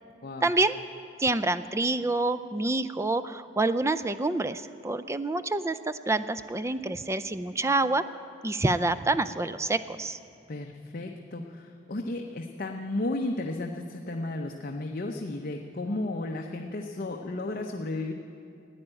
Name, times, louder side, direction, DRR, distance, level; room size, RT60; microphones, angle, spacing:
voice 1, 0.4-0.8 1.2-8.0 8.4-10.2, right 2 dB, 15° right, 13 dB, 0.4 m, -27 dB
voice 2, 10.5-18.1, left 2 dB, 50° left, 2 dB, 0.7 m, -33 dB
15.0 x 9.8 x 8.9 m, 2.6 s
head